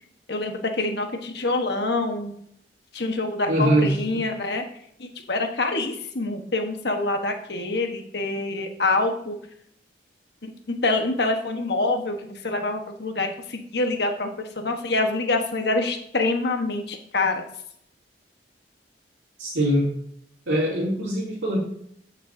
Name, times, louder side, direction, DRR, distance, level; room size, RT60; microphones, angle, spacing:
voice 1, 0.3-2.3 2.9-4.6 5.3-9.4 10.8-14.3 14.6-17.4, left 2 dB, 60° left, 4 dB, 1.3 m, -26 dB
voice 2, 3.5-4.2 19.4-19.9 20.5-21.6, right 1 dB, 80° right, -8 dB, 2.9 m, -22 dB
13.0 x 6.7 x 2.7 m, 0.67 s
head